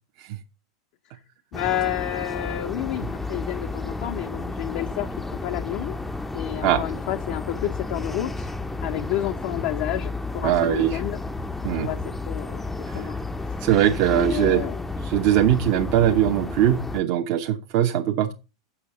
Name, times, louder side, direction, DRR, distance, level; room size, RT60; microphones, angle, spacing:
voice 1, 1.5-6.0 6.3-8.5 8.8-11.2 11.7-12.0 12.3-13.2 13.5-13.6 14.1-14.8, left 13 dB, 50° left, 0.6 m, -30 dB
sound 1, 1.5-17.0, left 3 dB, 10° left, 0.5 m, -32 dB
voice 2, 10.4-11.0 11.6-11.9 13.6-14.7 15.0-18.3, right 11 dB, 50° right, 0.8 m, -21 dB
7.2 x 6.1 x 6.3 m
figure-of-eight pair, 90°, 2 cm